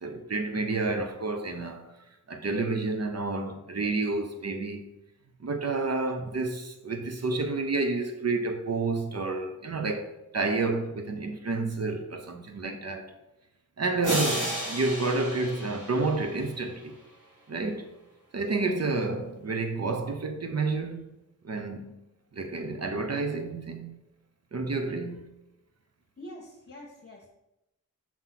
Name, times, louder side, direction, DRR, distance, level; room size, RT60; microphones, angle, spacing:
voice 1, 0.0-1.9 2.3-5.0 5.4-13.1 13.8-17.0 17.5-17.9 18.3-21.1 21.4-22.0 22.3-24.0 24.5-25.3, right 3 dB, 55° right, 0.8 m, -30 dB
sound 1, 14.0-16.7, right 1 dB, 80° right, 2.3 m, -33 dB
voice 2, 26.2-27.3, equal, 45° left, 1.2 m, -45 dB
6.0 x 4.0 x 5.8 m
wide cardioid pair, 110°, 31 cm